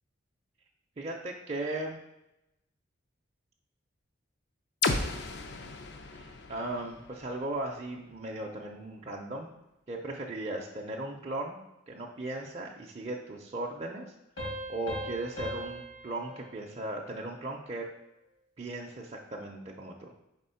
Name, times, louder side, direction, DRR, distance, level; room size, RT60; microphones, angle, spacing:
voice 1, 1.0-2.0 6.1-9.5 9.9-11.6 11.9-17.9 18.6-20.1, right 2 dB, 35° right, -1 dB, 0.5 m, -37 dB
sound 1, 4.8-8.7, left 3 dB, 60° left, 0.5 m, -35 dB
Piano, 14.4-17.7, equal, 80° left, 2.2 m, -40 dB
4.7 x 3.6 x 5.6 m, 0.88 s
head